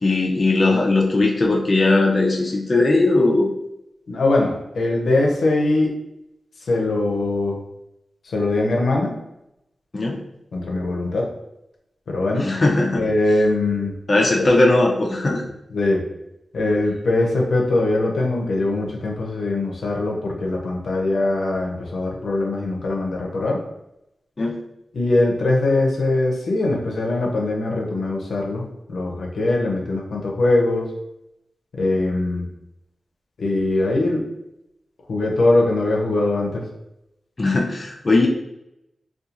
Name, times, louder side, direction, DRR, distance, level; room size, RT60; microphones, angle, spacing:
voice 1, 0.0-3.5 9.9-10.2 12.3-13.1 14.1-15.4 24.4-24.5 37.4-38.3, left 2 dB, 40° left, -1 dB, 0.4 m, -18 dB
voice 2, 4.1-6.0 6.6-7.6 8.2-9.1 10.5-11.3 12.1-12.5 12.9-14.0 14.4-14.5 15.7-16.0 16.5-23.6 24.9-30.9 31.8-32.5 33.4-34.2 35.1-36.6, left 2 dB, 90° left, -1 dB, 0.5 m, -21 dB
2.8 x 2.3 x 2.4 m, 0.85 s
wide cardioid pair, 105°, 0 cm